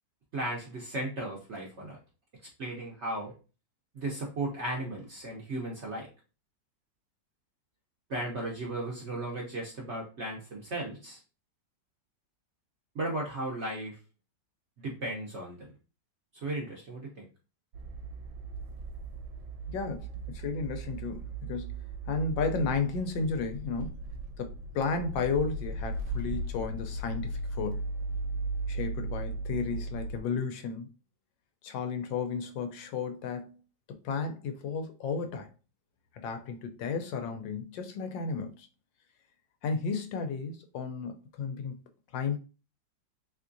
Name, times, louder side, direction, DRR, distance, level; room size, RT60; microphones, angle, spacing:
voice 1, 0.3-2.0 2.6-3.3 3.9-6.1 8.1-11.2 12.9-14.0 14.8-15.7 16.3-17.2, right 1 dB, 55° right, 0.8 m, -35 dB
sound 1, 17.7-30.2, right 2 dB, 75° right, 1.2 m, -37 dB
voice 2, 19.7-24.0 24.4-27.8 28.7-30.9 31.6-33.6 34.0-35.5 36.2-38.7 39.6-41.7 42.1-42.4, left 5 dB, 85° left, 1.3 m, -33 dB
3.5 x 3.1 x 2.5 m
omnidirectional pair, 2.0 m